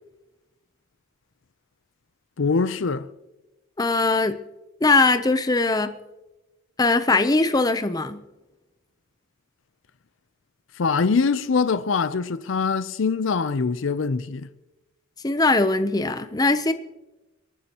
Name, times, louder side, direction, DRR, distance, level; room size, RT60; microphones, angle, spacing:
voice 1, 2.4-3.1 10.8-14.5, left 5 dB, 65° left, 0.5 m, -23 dB
voice 2, 3.8-4.4 4.8-5.9 6.8-8.2 15.2-16.7, left 3 dB, 20° left, 0.6 m, -20 dB
28.5 x 9.6 x 2.9 m
head